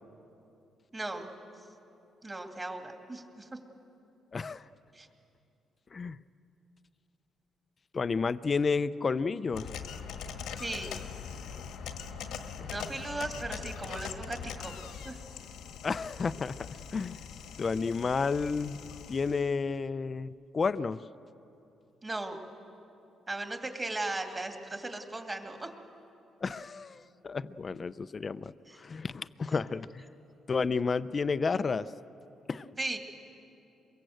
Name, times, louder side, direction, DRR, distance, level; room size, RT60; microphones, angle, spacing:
voice 1, 0.9-1.3 2.2-3.5 4.9-5.1 10.6-11.0 12.7-14.8 15.0-15.2 22.0-22.5 23.3-25.7 28.7-28.8 29.5-29.6 32.8-33.0, right 2 dB, 25° right, 4 dB, 2.4 m, -37 dB
voice 2, 4.3-4.6 5.9-6.2 7.9-9.7 12.6-12.7 15.8-16.6 16.9-17.2 17.6-18.8 19.1-21.0 26.4-30.0 30.5-31.9 32.5-32.7, left 4 dB, 35° left, 13 dB, 0.5 m, -31 dB
sound 1, 9.5-19.5, left 7 dB, 90° left, 1.5 m, -42 dB
23.5 x 23.0 x 7.9 m, 2.8 s
cardioid pair, 105°, 0 cm